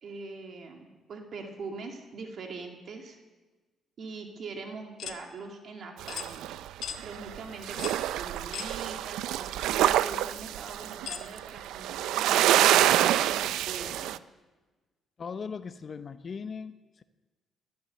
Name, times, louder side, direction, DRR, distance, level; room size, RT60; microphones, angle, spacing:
voice 1, 0.0-3.2 4.0-6.6 7.0-14.1, right 4 dB, 60° right, 3 dB, 2.2 m, -42 dB
sound 1, 5.0-5.2 6.1-6.3 6.8-7.0 7.8-8.0 8.5-8.7 9.6-9.7 11.1-11.3, left 9 dB, 70° left, 1.1 m, -38 dB
sound 2, 6.0-7.4 7.6-14.2, right 13 dB, 90° right, 0.4 m, -26 dB
voice 2, 15.2-17.0, left 5 dB, 45° left, 12 dB, 0.7 m, -39 dB
17.5 x 12.0 x 6.7 m, 1.2 s
cardioid pair, 90°, 0 cm